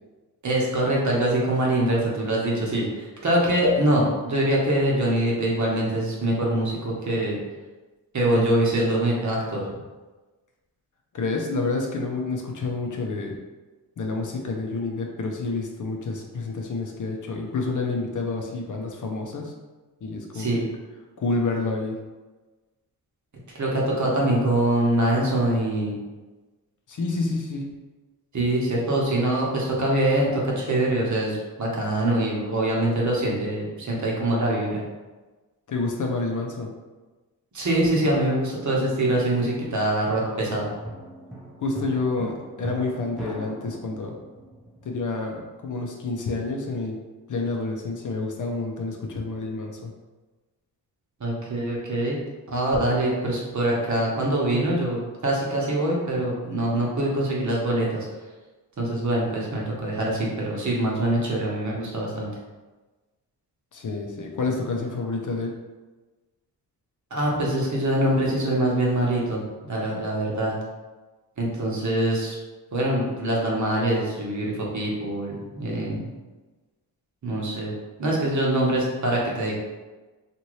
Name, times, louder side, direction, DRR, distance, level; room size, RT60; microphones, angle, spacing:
voice 1, 0.4-7.4 8.1-9.6 20.3-20.6 23.5-26.0 28.3-34.8 37.5-40.7 51.2-52.2 52.5-58.1 58.8-62.3 67.1-69.4 69.7-70.5 71.4-72.4 72.7-76.1 77.2-79.5, right 1 dB, 45° right, -3 dB, 1.0 m, -24 dB
voice 2, 11.1-13.4 14.0-19.5 20.0-20.6 21.2-22.0 26.9-27.7 35.7-36.7 41.6-44.2 44.8-47.0 47.3-49.9 63.7-65.5, left 3 dB, 50° left, 1 dB, 0.6 m, -29 dB
sound 1, 40.4-45.7 53.2-54.4, right 1 dB, ahead, 0.8 m, -41 dB
2.8 x 2.5 x 3.1 m, 1.2 s
cardioid pair, 60°, 40 cm